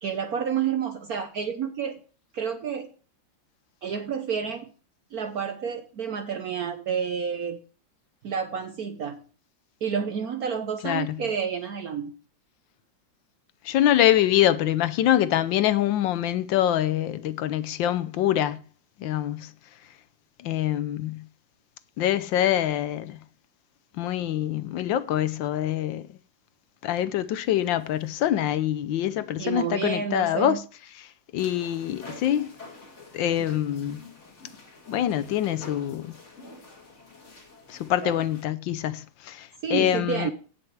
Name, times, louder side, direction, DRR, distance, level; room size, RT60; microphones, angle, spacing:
voice 1, 0.0-2.0 2.3-2.9 3.8-4.7 5.1-7.6 8.2-9.2 9.8-12.1 29.4-30.6 38.0-38.2 39.6-40.3, right 7 dB, 60° right, 1.2 m, -29 dB
voice 2, 10.8-11.2 13.6-18.6 19.0-19.5 20.4-21.2 22.0-23.2 24.0-26.1 26.8-30.6 31.3-32.5 33.1-34.0 34.9-36.1 37.7-40.3, left 12 dB, 80° left, 1.4 m, -25 dB
sound 1, 27.4-28.3 31.4-38.5, left 2 dB, 40° left, 2.6 m, -48 dB
17.5 x 6.0 x 3.3 m
omnidirectional pair, 2.1 m